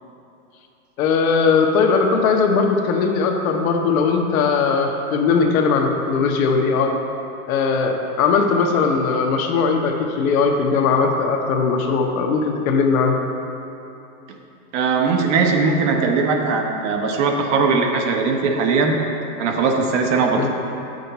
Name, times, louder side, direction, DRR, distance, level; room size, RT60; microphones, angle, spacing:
voice 1, 1.0-7.0 7.5-13.2 20.3-20.5, left 5 dB, 60° left, 3 dB, 1.0 m, -19 dB
voice 2, 14.7-19.0 19.4-20.5, right 4 dB, 50° right, 2 dB, 1.0 m, -19 dB
7.6 x 6.5 x 4.1 m, 2.8 s
supercardioid pair, 135°, 46 cm